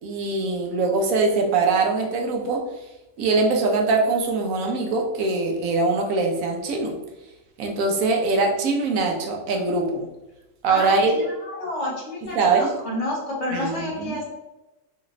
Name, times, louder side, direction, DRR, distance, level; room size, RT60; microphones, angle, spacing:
voice 1, 0.0-2.6 3.2-7.0 7.6-10.1 10.6-11.1 12.3-12.7 13.5-14.2, right 3 dB, 85° right, 2 dB, 1.1 m, -22 dB
voice 2, 10.7-14.3, left 1 dB, 60° left, -4 dB, 1.3 m, -29 dB
3.2 x 2.5 x 3.0 m, 1.0 s
omnidirectional pair, 1.4 m